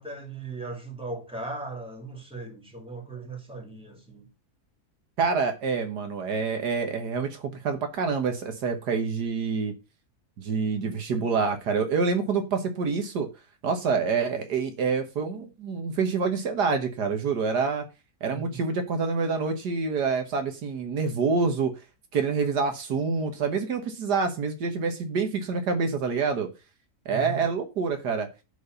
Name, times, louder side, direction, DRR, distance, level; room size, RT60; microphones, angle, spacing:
voice 1, 0.0-4.3 18.3-18.6 27.1-27.4, right 3 dB, 5° right, 2.7 m, -38 dB
voice 2, 5.2-9.7 10.4-13.3 13.6-17.8 18.2-21.7 22.1-26.5 27.1-28.3, right 5 dB, 80° right, 1.9 m, -27 dB
10.0 x 4.4 x 6.7 m
omnidirectional pair, 1.8 m